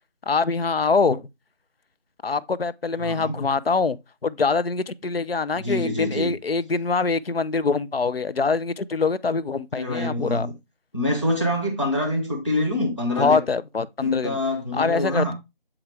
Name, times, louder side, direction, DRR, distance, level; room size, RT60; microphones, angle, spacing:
voice 1, 0.3-1.3 2.2-10.5 13.2-14.4 14.7-15.3, left 4 dB, 80° left, 0.6 m, -24 dB
voice 2, 3.0-3.4 5.6-6.4 9.7-10.5 10.9-13.4 14.0-15.3, left 1 dB, 30° left, 1.0 m, -25 dB
7.2 x 4.8 x 3.3 m
figure-of-eight pair, 175°, 29 cm